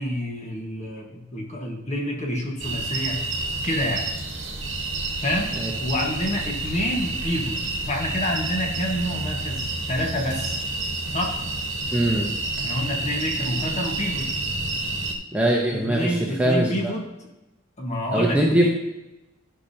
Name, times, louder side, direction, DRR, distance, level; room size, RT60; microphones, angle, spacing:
voice 1, 0.0-3.2 3.6-4.1 5.2-5.5 5.8-10.6 11.1-11.4 12.6-14.3 15.7-17.3 17.8-18.7, equal, 35° left, 0 dB, 1.3 m, -28 dB
sound 1, 2.6-15.1, right 2 dB, 70° right, 1.2 m, -29 dB
voice 2, 11.9-12.3 15.3-16.9 18.1-18.7, right 1 dB, 5° right, -2 dB, 0.8 m, -22 dB
11.5 x 5.8 x 2.8 m, 0.97 s
head